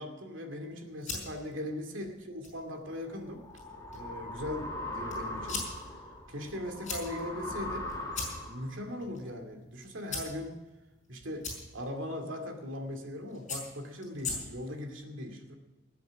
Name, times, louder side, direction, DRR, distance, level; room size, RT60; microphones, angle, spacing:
voice 1, 0.0-3.5 3.9-5.7 6.3-7.9 8.4-10.6 11.1-15.5, left 1 dB, 70° right, 4 dB, 2.5 m, -39 dB
sound 1, 0.7-14.8, left 4 dB, 40° left, 5.6 m, -44 dB
sound 2, 3.0-8.7, left 1 dB, 20° left, 2.4 m, -40 dB
19.5 x 7.8 x 6.4 m, 1.1 s
head